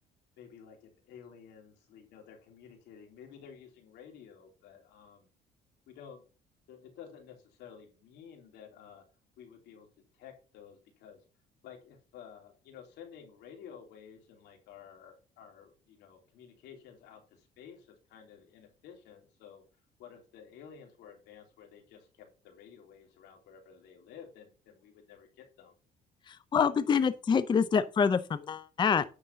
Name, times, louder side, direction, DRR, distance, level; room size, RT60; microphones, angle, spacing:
voice 1, 0.4-5.3 5.9-6.3 6.7-9.0 9.4-9.9 10.1-11.2 11.6-19.6 20.0-25.7, left 7 dB, 85° left, 3.0 m, -52 dB
voice 2, 26.3-29.0, left 6 dB, 25° left, 0.5 m, -26 dB
9.7 x 3.8 x 6.6 m
cardioid pair, 110°, 17 cm